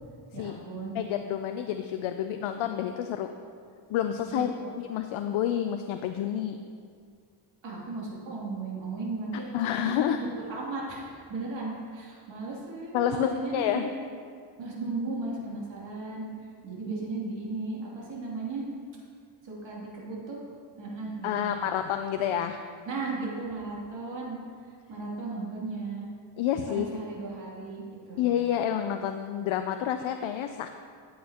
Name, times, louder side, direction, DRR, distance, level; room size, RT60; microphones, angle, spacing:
voice 1, 0.3-0.9 4.3-4.7 7.6-13.9 14.6-16.3 16.6-18.6 19.4-20.4 20.8-21.5 22.8-24.4 24.9-26.1 26.7-28.2, right 3 dB, 70° right, -5 dB, 2.9 m, -36 dB
voice 2, 0.9-3.3 3.9-4.5 4.8-6.6 9.5-10.2 12.9-13.9 21.2-22.6 26.4-26.9 28.2-30.7, left 10 dB, 80° left, 7 dB, 0.6 m, -29 dB
14.0 x 8.5 x 2.9 m, 2.1 s
cardioid pair, 145°, 47 cm